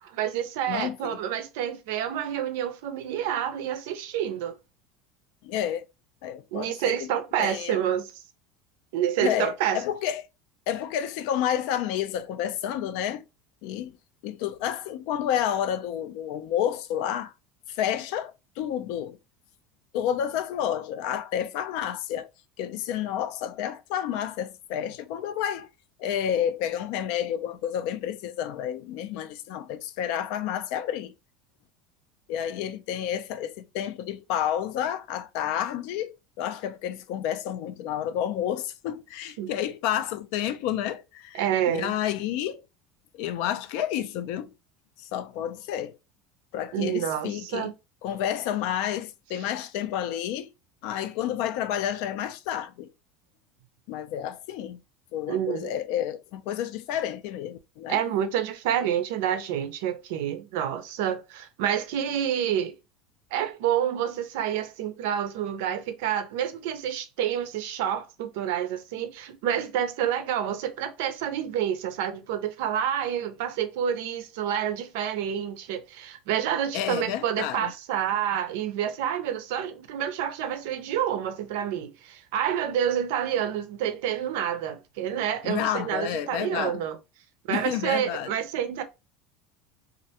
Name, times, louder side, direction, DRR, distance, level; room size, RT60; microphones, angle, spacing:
voice 1, 0.0-4.6 6.5-8.2 8.9-9.8 39.4-39.5 41.3-42.0 46.7-47.7 55.3-55.7 57.9-62.8 63.3-87.0 87.5-88.8, right 10 dB, 75° right, 0.4 m, -28 dB
voice 2, 0.7-1.2 5.4-5.8 6.2-7.1 7.4-7.8 9.2-10.2 10.7-13.2 13.6-14.0 14.2-17.3 17.7-19.2 19.9-22.3 22.6-25.7 26.0-31.1 32.3-42.6 43.1-44.5 45.0-45.9 46.5-47.7 48.0-50.5 50.8-52.9 53.9-54.8 55.1-58.0 76.7-77.7 85.4-86.8 87.5-88.3, left 10 dB, 60° left, 0.3 m, -30 dB
2.4 x 2.1 x 2.7 m
cardioid pair, 160°, 0 cm